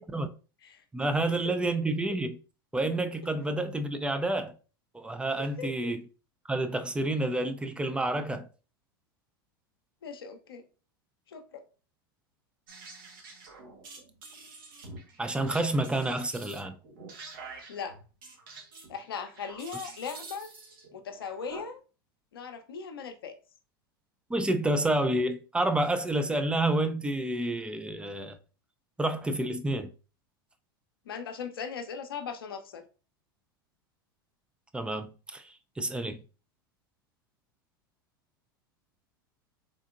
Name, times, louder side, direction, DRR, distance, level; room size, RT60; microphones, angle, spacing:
voice 1, 0.9-2.4 2.7-4.5 4.9-6.0 6.5-8.5 15.2-16.8 24.3-28.4 29.0-29.9 34.7-36.2, right 1 dB, 10° right, 0.4 m, -29 dB
voice 2, 5.4-5.9 10.0-10.6 11.3-11.6 17.7-18.0 18.9-20.5 20.9-21.8 22.3-23.3 31.1-32.8, left 6 dB, 75° left, 0.6 m, -39 dB
sound 1, 12.7-21.6, right 3 dB, 65° right, 1.3 m, -47 dB
3.7 x 3.4 x 2.4 m
hypercardioid pair, 85°, 12 cm